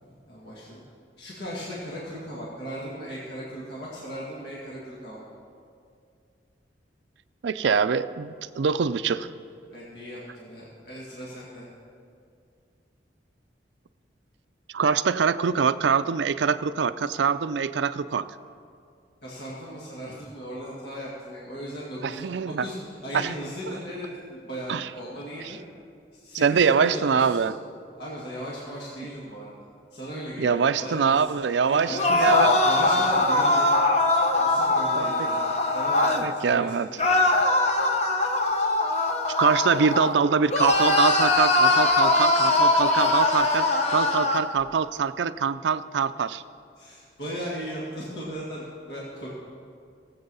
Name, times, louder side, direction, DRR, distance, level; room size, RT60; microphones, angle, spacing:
voice 1, 0.0-0.8 1.2-5.2 9.7-11.7 19.2-22.3 22.6-22.8 23.0-25.6 26.1-27.5 28.0-29.5 29.9-31.2 31.6-32.3 32.6-33.7 34.2-35.4 35.7-37.1 42.4-42.9 46.8-49.3, equal, 65° left, -6 dB, 2.1 m, -37 dB
voice 2, 7.4-9.3 14.7-18.2 22.0-22.7 23.1-23.3 24.7-24.9 26.4-27.5 30.4-32.6 34.9-35.3 36.2-36.9 39.4-46.4, right 6 dB, 75° right, 14 dB, 0.4 m, -24 dB
sound 1, 31.9-36.3 37.0-40.2 40.5-44.5, left 2 dB, 35° left, 0.9 m, -22 dB
17.0 x 7.9 x 5.5 m, 2.3 s
head